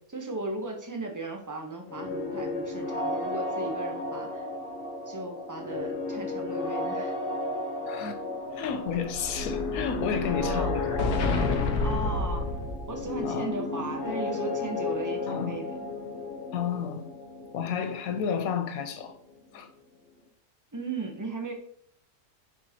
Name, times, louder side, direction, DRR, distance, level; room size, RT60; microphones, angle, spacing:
voice 1, 0.1-4.5 5.1-7.1 10.4-10.7 11.8-12.5 12.9-15.9 20.7-21.5, right 2 dB, 15° right, 0.7 m, -36 dB
Ice Giant Sneezing Fit, 1.9-19.5, left 3 dB, 45° left, 0.8 m, -34 dB
voice 2, 7.9-8.2 8.5-11.1 13.2-13.6 15.3-15.6 16.5-17.0 17.5-19.2 19.5-19.7, left 7 dB, 70° left, 1.2 m, -31 dB
Explosion, 8.5-13.2, left 2 dB, 85° left, 1.4 m, -30 dB
6.3 x 5.4 x 2.8 m
omnidirectional pair, 1.7 m